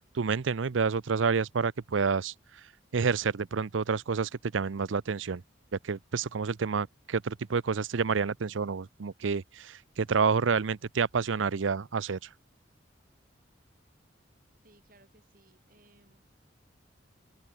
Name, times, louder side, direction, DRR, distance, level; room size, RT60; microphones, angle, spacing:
voice 1, 0.1-2.3 2.9-5.4 5.8-12.2, right 5 dB, 85° right, 0.6 m, -29 dB
voice 2, 14.6-16.3, right 2 dB, 45° right, 7.0 m, -62 dB
head